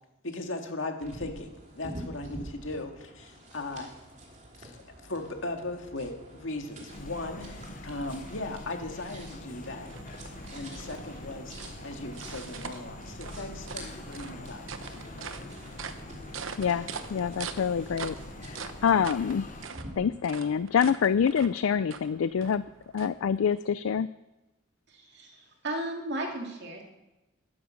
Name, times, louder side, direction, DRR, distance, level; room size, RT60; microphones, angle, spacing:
voice 1, 0.2-3.9 4.6-9.9 10.5-14.6, left 2 dB, 70° left, 4 dB, 2.0 m, -38 dB
sound 1, 1.0-19.9, right 1 dB, 35° right, 3.0 m, -47 dB
sound 2, 6.9-19.7, left 2 dB, 40° left, 0.9 m, -44 dB
sound 3, 9.2-23.6, right 5 dB, 75° right, 1.0 m, -44 dB
voice 2, 16.6-18.2 18.4-19.4 20.0-22.6 22.9-24.1, left 7 dB, 85° left, 16 dB, 0.4 m, -26 dB
voice 3, 24.9-26.8, right 1 dB, 55° right, 1 dB, 2.8 m, -35 dB
13.0 x 12.0 x 6.4 m, 1.0 s
head